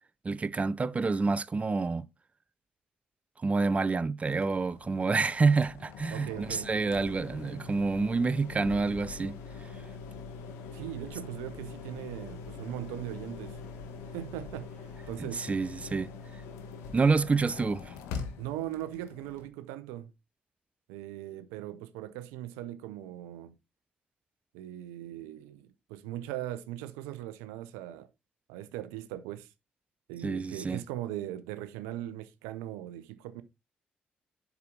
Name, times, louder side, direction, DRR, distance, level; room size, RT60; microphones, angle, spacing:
voice 1, 0.2-2.1 3.4-9.4 15.2-16.1 16.9-18.0 30.2-30.8, right 4 dB, 30° right, 0.6 m, -28 dB
sound 1, 4.3-19.5, left 5 dB, 80° left, 1.2 m, -43 dB
voice 2, 6.1-6.7 10.7-13.6 14.1-15.5 18.4-20.1 20.9-23.5 24.5-28.1 28.5-29.5 30.1-33.4, right 13 dB, 85° right, 0.7 m, -39 dB
8.3 x 6.1 x 3.8 m
hypercardioid pair, 50°, 4 cm